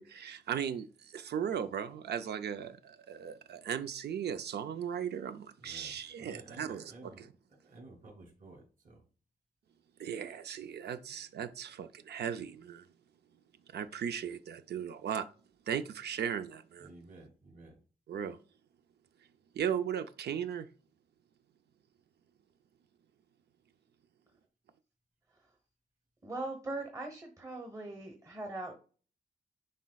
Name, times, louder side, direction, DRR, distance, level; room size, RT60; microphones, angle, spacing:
voice 1, 0.0-7.3 10.0-12.8 13.7-15.3 15.7-16.9 18.1-18.4 19.5-20.7, right 8 dB, 75° right, 0.5 m, -37 dB
voice 2, 5.6-5.9 6.2-7.3 7.6-9.0 16.8-17.8, right 2 dB, 55° right, 2.9 m, -53 dB
voice 3, 26.2-28.8, right 2 dB, 20° right, 1.0 m, -40 dB
10.0 x 4.1 x 2.3 m
wide cardioid pair, 145°, 17 cm